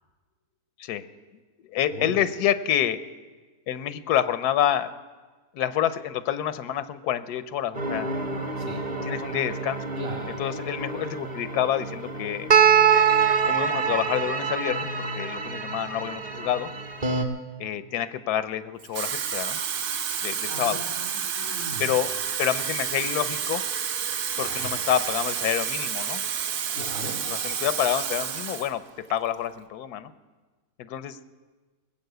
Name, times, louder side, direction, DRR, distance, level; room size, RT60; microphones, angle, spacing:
voice 1, 1.7-3.0 3.7-4.9 5.5-8.1 9.0-9.8 10.4-12.5 13.5-16.7 17.6-19.6 20.2-20.8 21.8-23.6 24.4-26.2 27.3-28.8 29.1-30.1 30.8-31.2, left 10 dB, 90° left, 13 dB, 1.2 m, -28 dB
sound 1, 7.7-17.2, right 6 dB, 30° right, 1.0 m, -25 dB
voice 2, 9.9-10.3 20.5-21.9 24.3-24.7 26.7-27.2, equal, 60° right, 0 dB, 3.4 m, -37 dB
Water tap faucet / Fill (with liquid), 18.8-28.7 29.1-29.4, right 7 dB, 90° right, 1.4 m, -30 dB
20.0 x 7.2 x 7.9 m, 1.3 s
omnidirectional pair, 1.6 m